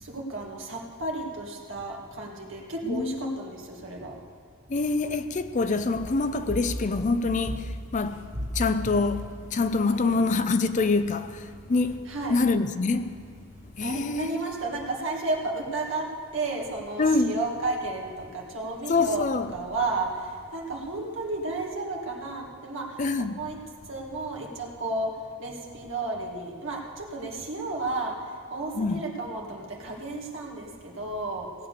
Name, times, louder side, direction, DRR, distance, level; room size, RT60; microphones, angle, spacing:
voice 1, 0.0-4.1 9.9-10.2 12.1-12.4 13.8-16.1 16.3-18.1 18.3-19.2 19.5-20.1 20.5-22.9 23.2-23.6 23.9-25.1 25.4-28.2 28.5-31.5, right 2 dB, 60° right, 2.2 m, -32 dB
voice 2, 2.8-3.4 4.7-8.2 8.5-13.2 13.8-14.4 17.0-17.4 18.9-19.5 23.0-23.4 28.7-29.0, left 3 dB, 35° left, 0.4 m, -26 dB
sound 1, 5.9-21.7, equal, 10° right, 1.3 m, -42 dB
17.5 x 8.7 x 6.8 m
head